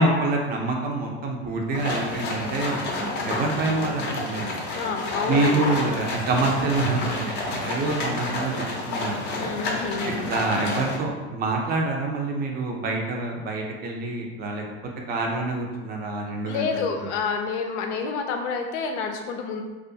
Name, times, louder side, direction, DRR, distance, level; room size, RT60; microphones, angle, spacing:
voice 1, 0.0-2.9 3.2-4.6 5.3-9.4 10.1-14.6 15.1-17.1, right 2 dB, 30° right, 1 dB, 0.5 m, -26 dB
sound 1, 1.7-11.0, left 2 dB, 30° left, 0.5 m, -29 dB
voice 2, 4.8-5.8 9.4-10.3 16.4-19.6, left 5 dB, 75° left, 3 dB, 0.5 m, -29 dB
2.3 x 2.3 x 2.6 m, 1.2 s
supercardioid pair, 105°, 34 cm